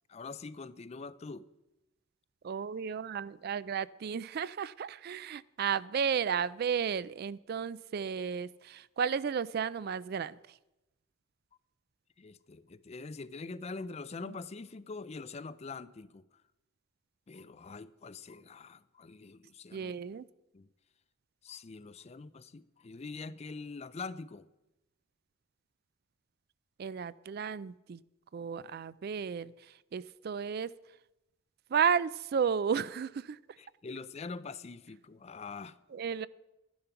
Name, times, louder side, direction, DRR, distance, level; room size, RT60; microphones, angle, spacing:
voice 1, 0.1-1.5 12.2-16.2 17.3-19.9 20.5-20.7 21.4-24.5 33.6-35.8, left 4 dB, 30° left, 0.4 m, -44 dB
voice 2, 2.4-10.4 14.2-14.4 19.7-20.3 26.8-28.0 28.3-30.7 31.7-33.4 35.9-36.3, right 7 dB, 50° right, 0.3 m, -33 dB
12.5 x 10.5 x 5.8 m
head